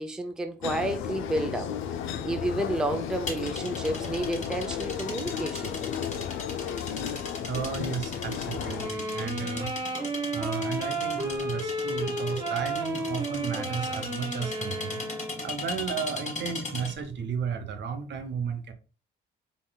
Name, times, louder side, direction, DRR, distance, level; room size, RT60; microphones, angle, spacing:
voice 1, 0.0-1.7 2.2-5.8, right 1 dB, 5° right, 0.4 m, -30 dB
sound 1, 0.6-8.9, left 9 dB, 85° left, 0.4 m, -34 dB
sound 2, 3.3-17.1, left 3 dB, 40° left, 1.4 m, -38 dB
voice 2, 7.4-9.8 10.3-15.0 15.4-18.7, right 6 dB, 65° right, 0.7 m, -33 dB
sound 3, 8.7-15.5, right 2 dB, 20° right, 1.2 m, -32 dB
3.9 x 3.7 x 2.2 m
cardioid pair, 90°, 20 cm